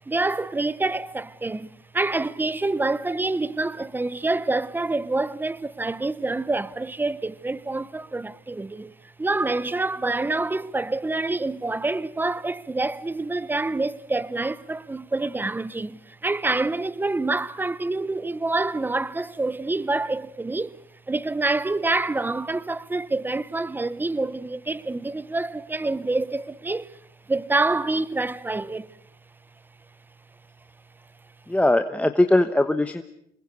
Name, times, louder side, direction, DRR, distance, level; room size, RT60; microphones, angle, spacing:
voice 1, 0.1-8.9 9.2-20.8 21.1-27.0 27.3-28.9, right 2 dB, 10° right, 0.9 m, -27 dB
voice 2, 31.5-33.0, left 1 dB, 10° left, 1.1 m, -20 dB
26.5 x 21.0 x 8.2 m
cardioid pair, 110°, 17 cm